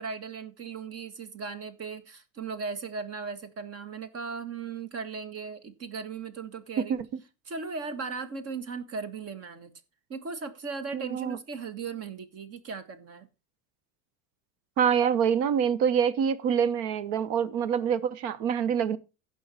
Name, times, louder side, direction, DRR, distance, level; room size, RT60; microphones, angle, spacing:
voice 1, 0.0-7.0 7.5-9.7 10.1-13.3, right 5 dB, 35° right, 1.8 m, -37 dB
voice 2, 6.8-7.2 10.9-11.4 14.8-19.0, right 7 dB, 65° right, 1.2 m, -26 dB
16.0 x 5.7 x 4.4 m
supercardioid pair, 125°, 40 cm